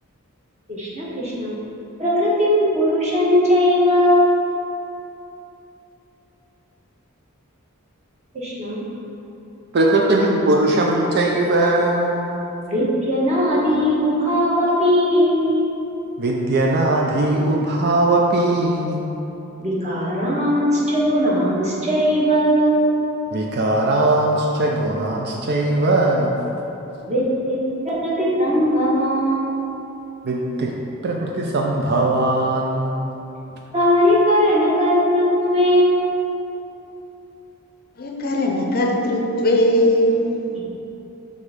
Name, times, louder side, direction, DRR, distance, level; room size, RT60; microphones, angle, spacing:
voice 1, 0.7-1.5 2.0-4.4 8.3-8.8 12.6-15.6 19.6-22.9 27.0-27.6 27.8-29.4 33.7-36.0, equal, 30° right, -7 dB, 1.3 m, -19 dB
voice 2, 9.7-12.4 16.2-19.0 20.6-20.8 23.3-26.3 30.2-30.8 31.0-33.1, right 2 dB, 50° right, 0 dB, 0.4 m, -20 dB
voice 3, 38.0-40.1, left 1 dB, 45° left, 0 dB, 0.6 m, -19 dB
6.3 x 3.6 x 5.0 m, 3.0 s
head